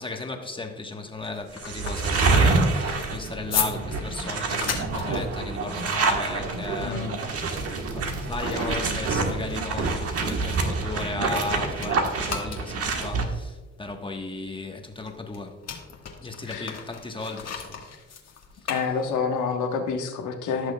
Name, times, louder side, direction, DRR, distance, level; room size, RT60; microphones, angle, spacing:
voice 1, 0.0-7.6 7.9-15.6 16.2-17.9 18.5-18.7, left 3 dB, 15° left, 1.2 m, -35 dB
sound 1, 1.0-11.5 11.8-19.5, left 6 dB, 55° left, 1.5 m, -37 dB
sound 2, 1.6-13.2, right 3 dB, 50° right, 1.3 m, -26 dB
voice 2, 6.8-7.2 16.5-16.7 18.7-20.7, left 5 dB, 80° left, 1.3 m, -28 dB
15.5 x 6.4 x 2.3 m
cardioid pair, 90°, 30 cm